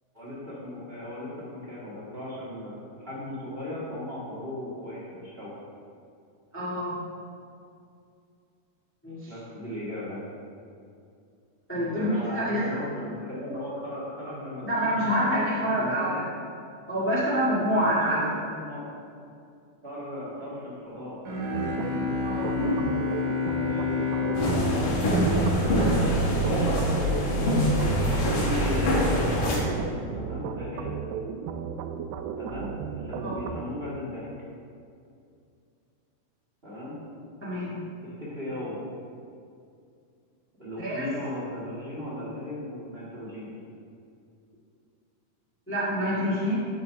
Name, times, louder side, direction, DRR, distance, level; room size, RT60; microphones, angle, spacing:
voice 1, 0.1-5.5 9.3-10.2 11.7-16.2 17.7-18.8 19.8-21.7 23.5-24.2 24.6-26.9 28.4-29.9 30.1-31.0 32.4-34.3 36.6-37.0 38.0-38.8 40.6-43.5, left 1 dB, 25° right, -8 dB, 1.4 m, -37 dB
voice 2, 6.5-6.9 9.0-9.3 11.7-12.8 14.6-16.2 16.9-18.2 22.2-22.8 33.2-33.4 37.4-37.8 40.8-41.1 45.7-46.5, equal, 15° left, -9 dB, 0.4 m, -27 dB
Bowed string instrument, 21.3-26.4, left 4 dB, 70° right, 2.6 m, -30 dB
sound 1, 21.5-33.6, right 7 dB, 90° right, 2.4 m, -35 dB
sound 2, 24.3-29.6, equal, 70° left, 3.0 m, -24 dB
11.0 x 7.0 x 3.5 m, 2.4 s
omnidirectional pair, 4.1 m